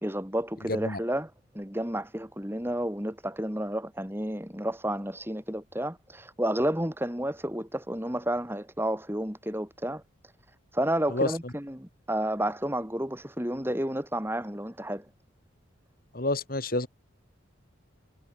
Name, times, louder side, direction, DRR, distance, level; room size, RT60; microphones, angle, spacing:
voice 1, 0.0-10.0 10.7-15.1, right 1 dB, 10° right, 3.5 m, -31 dB
voice 2, 0.7-1.0 11.1-11.5 16.1-16.9, left 2 dB, 45° left, 2.3 m, -29 dB
head